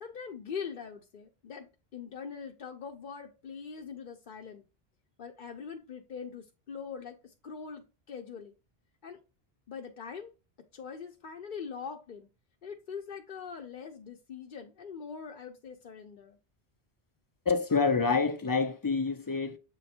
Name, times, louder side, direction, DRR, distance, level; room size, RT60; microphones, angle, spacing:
voice 1, 0.0-4.6 5.2-8.5 9.0-9.2 9.7-10.3 10.7-12.3 12.6-16.4, left 6 dB, 60° left, 0.8 m, -42 dB
voice 2, 17.5-19.6, left 4 dB, 35° left, 0.4 m, -27 dB
7.6 x 3.2 x 4.3 m
omnidirectional pair, 1.0 m